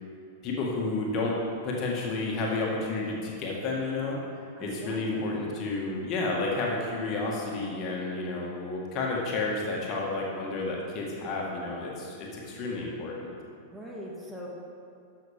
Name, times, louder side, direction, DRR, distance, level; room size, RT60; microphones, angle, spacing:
voice 1, 0.4-1.4 1.6-4.2 4.6-13.3, left 3 dB, 35° left, -2 dB, 1.6 m, -31 dB
voice 2, 4.6-5.4 13.7-14.5, equal, 5° right, -4 dB, 1.4 m, -41 dB
13.0 x 5.8 x 3.5 m, 2.5 s
figure-of-eight pair, 95°, 0 cm